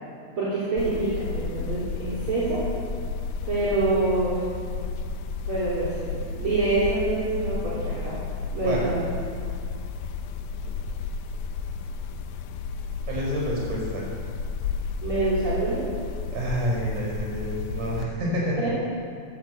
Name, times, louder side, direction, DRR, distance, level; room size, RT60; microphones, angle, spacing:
voice 1, 0.4-2.6 3.4-4.4 5.5-8.2 8.5-9.0 15.0-15.8 18.6-18.7, right 2 dB, 45° right, -10 dB, 4.3 m, -26 dB
sound 1, 0.8-18.0, left 5 dB, 90° left, 2.3 m, -32 dB
voice 2, 13.1-14.1 16.3-18.7, equal, 85° right, -3 dB, 6.6 m, -28 dB
16.0 x 11.5 x 7.8 m, 2.3 s
omnidirectional pair, 3.5 m